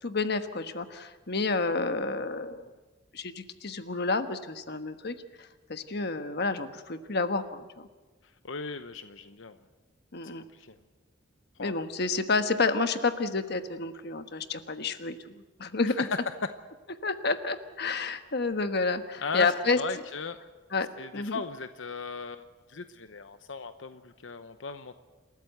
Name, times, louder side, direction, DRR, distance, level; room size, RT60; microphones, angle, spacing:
voice 1, 0.0-2.7 3.1-7.9 10.1-10.4 11.6-16.1 17.0-19.8 20.7-20.9 21.1-21.4, left 3 dB, 60° left, 9 dB, 1.3 m, -30 dB
voice 2, 8.4-9.6 10.2-10.8 11.6-11.8 16.0-16.1 19.2-20.4 21.0-25.0, left 4 dB, 85° left, 10 dB, 0.9 m, -37 dB
28.0 x 14.0 x 7.9 m, 1.3 s
head